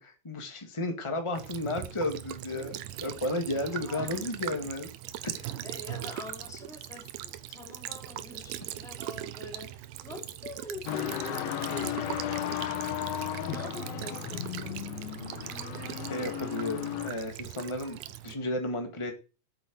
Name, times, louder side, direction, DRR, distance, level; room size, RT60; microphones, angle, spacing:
voice 1, 0.0-4.9 5.2-5.5 12.5-12.6 15.8-19.1, left 1 dB, 25° left, 0.6 m, -33 dB
Child speech kid speaking / Bird vocalization bird call bird song / Stream, 1.4-18.4, right 13 dB, 90° right, 2.6 m, -40 dB
voice 2, 3.5-4.7 5.6-12.6 13.5-15.1, left 2 dB, ahead, 2.6 m, -45 dB
sound 1, 10.9-17.1, left 12 dB, 85° left, 2.9 m, -35 dB
8.8 x 8.1 x 7.8 m
omnidirectional pair, 4.1 m